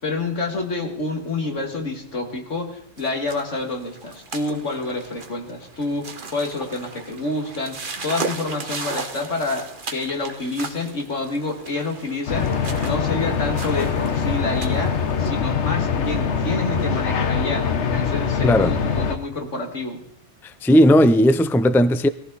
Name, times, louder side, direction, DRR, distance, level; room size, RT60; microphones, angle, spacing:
voice 1, 0.0-12.5 12.8-20.0, left 3 dB, 90° left, 2.7 m, -28 dB
sound 1, 3.0-15.3, right 4 dB, 45° right, 1.4 m, -36 dB
sound 2, 12.3-19.2, left 6 dB, 70° left, 1.4 m, -23 dB
voice 2, 18.4-18.7 20.4-22.1, equal, 5° left, 0.3 m, -16 dB
20.5 x 15.0 x 4.1 m
omnidirectional pair, 1.2 m